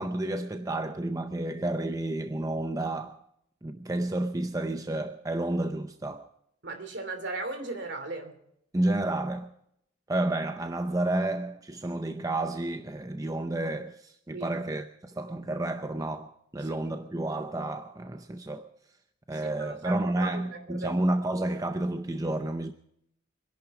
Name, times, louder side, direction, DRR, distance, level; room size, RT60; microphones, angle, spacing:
voice 1, 0.0-3.2 3.6-6.3 8.7-9.5 10.1-18.7 19.3-22.7, right 1 dB, 15° right, 0.6 m, -30 dB
voice 2, 6.6-8.4 14.3-14.5 16.6-16.8 19.4-21.0, right 3 dB, 55° right, 2.9 m, -37 dB
24.5 x 11.0 x 4.9 m
head